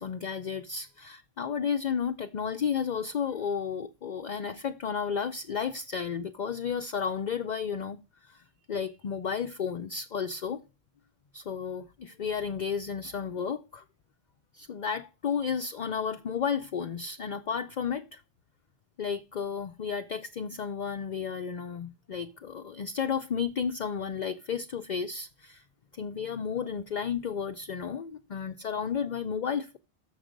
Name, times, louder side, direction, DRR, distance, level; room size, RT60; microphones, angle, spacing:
voice 1, 0.0-8.4 8.7-10.6 11.3-13.8 14.5-18.2 19.0-25.6 25.9-29.8, left 7 dB, 50° left, 0.6 m, -32 dB
6.8 x 6.3 x 5.1 m
omnidirectional pair, 1.1 m